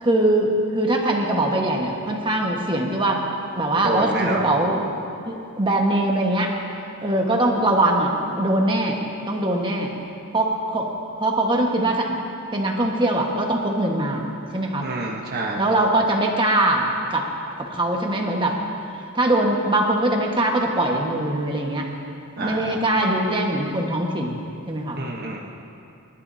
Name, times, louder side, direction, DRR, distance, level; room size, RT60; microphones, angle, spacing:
voice 1, 0.0-3.2 3.5-6.5 7.0-9.0 9.3-9.9 10.3-10.9 11.2-12.2 12.5-14.2 14.5-14.9 15.5-17.2 17.6-18.6 19.1-21.9 22.4-24.4 24.7-25.0, right 1 dB, 20° right, 0 dB, 1.4 m, -22 dB
voice 2, 3.8-4.5 14.8-15.6 22.4-22.8 25.0-25.4, right 2 dB, 45° right, -2 dB, 1.1 m, -27 dB
27.0 x 12.0 x 2.8 m, 2.6 s
head